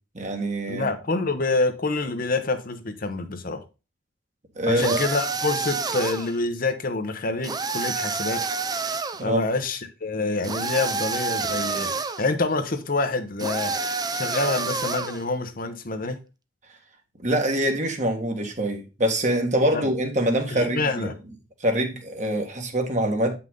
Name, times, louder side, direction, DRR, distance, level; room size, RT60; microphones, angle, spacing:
voice 1, 0.1-0.9 4.6-5.0 9.2-9.4 17.2-21.1 21.6-23.3, right 1 dB, 40° right, 1.8 m, -24 dB
voice 2, 0.7-3.6 4.6-8.4 8.7-8.9 9.2-16.2 19.7-19.8 20.5-21.1, left 3 dB, 50° left, 1.0 m, -27 dB
sound 1, 4.8-6.4 7.4-9.2 10.4-12.3 13.4-15.2, right 4 dB, 20° right, 0.6 m, -28 dB
8.0 x 5.8 x 3.8 m
head